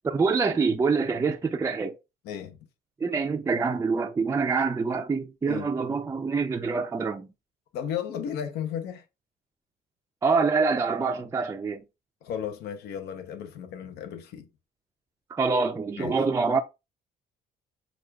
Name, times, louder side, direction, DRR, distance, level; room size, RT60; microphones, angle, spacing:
voice 1, 0.0-2.0 3.0-7.3 10.2-11.8 15.3-16.6, right 4 dB, 15° right, 0.4 m, -25 dB
voice 2, 2.2-2.6 5.5-5.7 7.7-9.0 12.2-14.5 16.0-16.2, left 9 dB, 75° left, 0.7 m, -34 dB
6.2 x 2.3 x 2.2 m
cardioid pair, 110°, 17 cm